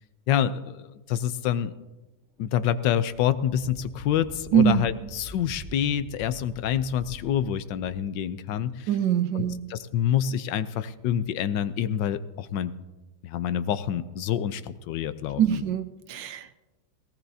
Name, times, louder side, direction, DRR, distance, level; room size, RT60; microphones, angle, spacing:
voice 1, 0.3-1.7 2.4-8.9 9.3-9.4 9.7-12.7 13.2-15.6, left 10 dB, 75° left, 13 dB, 1.4 m, -27 dB
sound 1, 2.4-2.5 3.0-8.1, equal, ahead, 2.0 m, -45 dB
voice 2, 4.5-4.8 8.9-9.6 15.4-16.5, right 9 dB, 80° right, 10 dB, 1.5 m, -23 dB
19.5 x 17.5 x 2.8 m, 1.1 s
omnidirectional pair, 2.0 m